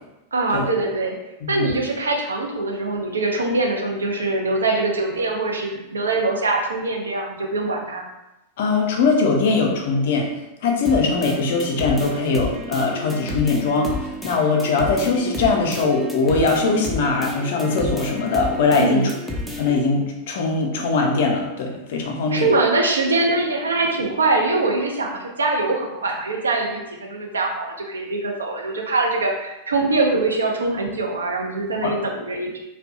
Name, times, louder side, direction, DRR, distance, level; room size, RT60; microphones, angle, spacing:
voice 1, 0.3-1.2 1.5-8.1 18.8-19.1 22.3-32.5, right 2 dB, 70° right, 1 dB, 0.4 m, -23 dB
voice 2, 8.6-10.3 10.6-19.1 19.6-22.5 31.7-32.0, left 4 dB, 55° left, 1 dB, 0.4 m, -21 dB
sound 1, 10.9-19.9, left 1 dB, 5° right, 0.4 m, -31 dB
2.5 x 2.1 x 2.4 m, 0.96 s
figure-of-eight pair, 90°, 0 cm